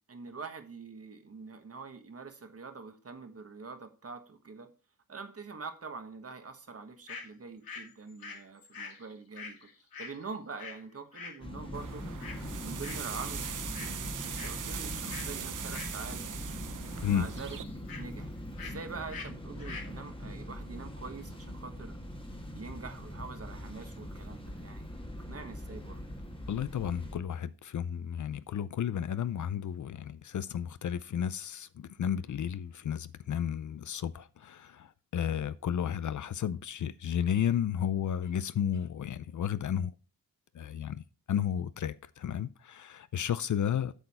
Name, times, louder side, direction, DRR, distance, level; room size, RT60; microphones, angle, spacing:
voice 1, 0.1-4.7 5.1-9.7 10.0-12.0 12.6-16.2 17.0-17.6 18.0-18.3 18.6-22.0 22.5-24.9 25.3-26.0, right 4 dB, 40° right, 1.3 m, -44 dB
sound 1, 7.1-7.3 7.6-10.8 11.1-11.4 12.2-12.5 12.8-13.1 13.4-13.9 14.2-14.6 15.1-15.3 15.7-16.5 16.7-18.0 18.6-18.8 19.1-19.3 19.6-19.9, left 5 dB, 80° left, 2.2 m, -45 dB
sound 2, 11.4-27.2, equal, 15° left, 1.4 m, -42 dB
sound 3, 11.7-17.6, right 9 dB, 60° right, 0.7 m, -40 dB
voice 2, 26.5-39.9 40.5-43.9, left 9 dB, 60° left, 0.5 m, -33 dB
8.2 x 6.8 x 4.2 m
wide cardioid pair, 120°, 35 cm